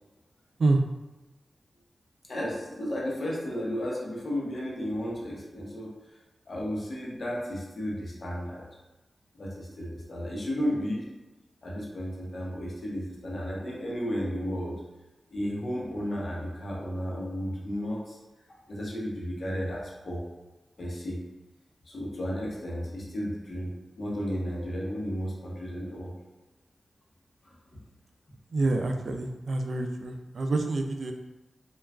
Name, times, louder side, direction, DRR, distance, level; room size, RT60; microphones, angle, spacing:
voice 1, 2.3-5.9 6.5-8.6 9.4-11.0 11.6-14.8 15.3-18.2 18.7-20.2 20.8-21.2 21.9-23.7 24.0-26.1 27.5-27.6, equal, 55° left, -3 dB, 0.8 m, -33 dB
voice 2, 28.5-31.1, right 2 dB, 65° right, 4 dB, 0.3 m, -27 dB
3.3 x 2.3 x 2.3 m, 1.1 s
cardioid pair, 65°, 0 cm